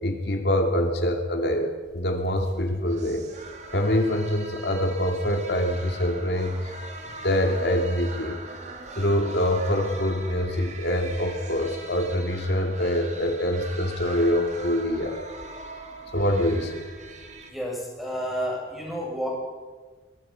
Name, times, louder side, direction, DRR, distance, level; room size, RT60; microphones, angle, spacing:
voice 1, 0.0-3.3 3.7-6.7 7.2-8.4 8.9-15.2 16.1-16.8, equal, 65° left, 4 dB, 2.4 m, -25 dB
sound 1, 1.8-17.5, right 2 dB, 40° right, 2.5 m, -41 dB
voice 2, 17.5-19.3, equal, ahead, -3 dB, 7.4 m, -30 dB
23.5 x 23.5 x 5.8 m, 1.4 s
head